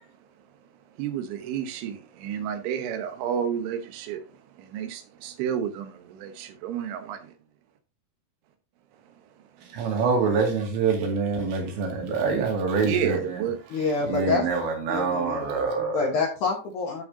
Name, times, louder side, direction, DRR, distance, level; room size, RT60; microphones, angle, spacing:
voice 1, 0.9-7.4 9.1-9.8 12.8-13.6, right 9 dB, 90° right, 3.5 m, -31 dB
voice 2, 9.6-13.4 14.0-16.1, right 5 dB, 75° right, 4.4 m, -26 dB
voice 3, 13.7-14.4 14.9-15.6 15.9-17.0, left 4 dB, 65° left, 2.0 m, -27 dB
12.5 x 6.1 x 2.7 m
omnidirectional pair, 5.3 m